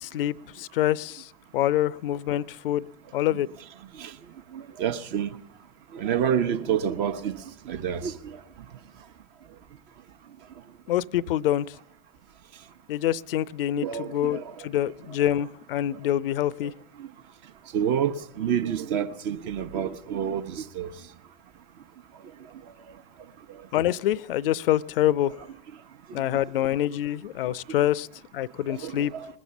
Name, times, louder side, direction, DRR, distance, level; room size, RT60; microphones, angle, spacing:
voice 1, 0.0-2.9 3.1-3.5 10.9-11.7 12.9-16.7 23.7-25.3 26.1-28.1 28.3-29.1, left 12 dB, 65° left, 0.5 m, -26 dB
voice 2, 4.5-5.4 5.9-8.4 13.8-14.7 16.6-16.7 17.0-17.1 17.7-20.9 26.3-26.4 28.7-29.3, right 8 dB, 45° right, 0.9 m, -29 dB
20.5 x 7.3 x 6.9 m
figure-of-eight pair, 90°, 30 cm